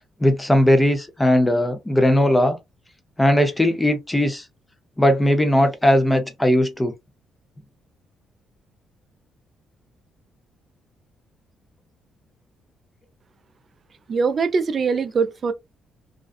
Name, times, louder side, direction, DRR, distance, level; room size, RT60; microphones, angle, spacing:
voice 1, 0.2-2.6 3.2-4.4 5.0-6.9, left 1 dB, 10° left, 0.6 m, -18 dB
voice 2, 14.1-15.5, right 5 dB, 45° right, 0.4 m, -22 dB
2.5 x 2.3 x 2.4 m
cardioid pair, 90°, 0 cm